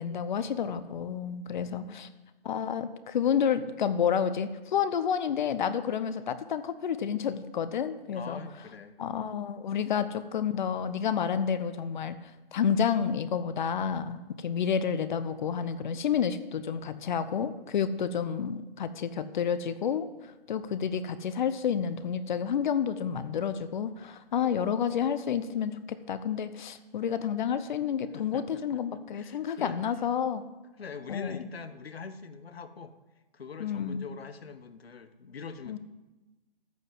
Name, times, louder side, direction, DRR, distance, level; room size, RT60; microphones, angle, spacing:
voice 1, 0.0-2.1 2.4-8.4 9.0-12.2 12.5-20.1 20.5-30.4 31.1-31.4 33.6-34.1 35.7-35.8, left 7 dB, 50° left, 12 dB, 0.9 m, -30 dB
voice 2, 1.6-2.1 8.1-9.0 9.9-10.1 28.1-30.0 30.8-32.9 33.3-35.8, left 5 dB, 90° left, 11 dB, 1.2 m, -44 dB
13.5 x 5.4 x 7.7 m, 1.1 s
hypercardioid pair, 150°, 30 cm